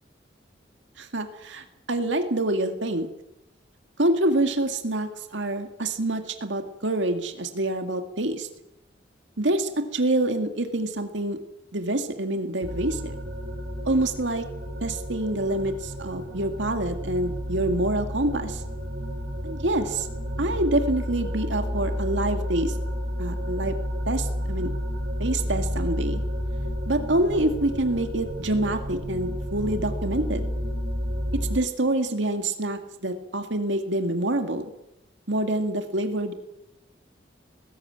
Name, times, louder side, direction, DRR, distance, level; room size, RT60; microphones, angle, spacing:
voice 1, 1.0-3.1 4.0-8.5 9.4-11.4 11.7-13.2 13.8-14.4 14.8-18.6 19.4-20.1 20.4-22.8 23.2-23.7 24.1-24.7 25.2-26.2 26.9-30.4 31.3-34.7 35.3-36.3, right 1 dB, 85° right, 6 dB, 2.1 m, -26 dB
sound 1, 12.6-31.6, equal, 55° right, 3.5 m, -31 dB
20.0 x 16.5 x 8.9 m, 0.89 s
head